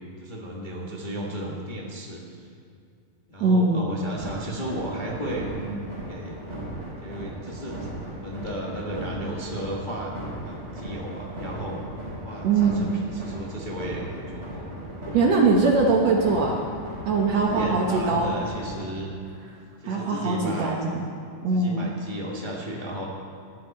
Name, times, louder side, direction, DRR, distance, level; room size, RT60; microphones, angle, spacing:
voice 1, 0.2-2.5 3.3-6.4 7.0-11.8 12.2-14.8 17.3-19.1 19.8-20.9 21.5-23.1, right 1 dB, 75° left, -4 dB, 0.4 m, -34 dB
voice 2, 3.4-4.0 12.4-13.0 15.1-16.6 17.1-18.3 19.9-21.0 21.4-21.9, right 3 dB, 65° right, 0 dB, 1.9 m, -22 dB
sound 1, 4.2-18.7, right 1 dB, 20° right, 4.6 m, -37 dB
19.0 x 11.5 x 4.3 m, 2.3 s
omnidirectional pair, 3.9 m